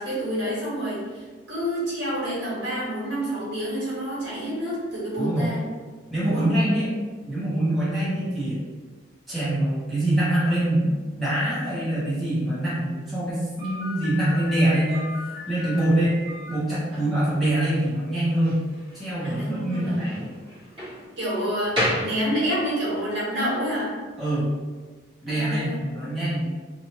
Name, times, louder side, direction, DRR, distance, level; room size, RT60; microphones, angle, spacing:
voice 1, 0.0-5.6 6.2-6.5 16.9-17.1 19.2-19.9 21.2-23.9 25.3-25.9, equal, 60° right, -8 dB, 1.3 m, -28 dB
voice 2, 5.2-5.5 6.1-6.9 7.2-8.6 9.3-16.2 16.5-18.6 18.9-20.3 24.2-24.5 25.2-26.5, right 1 dB, ahead, -12 dB, 0.9 m, -24 dB
Slam, 13.6-22.9, left 1 dB, 25° right, 1.1 m, -34 dB
3.0 x 2.4 x 2.9 m, 1.4 s
head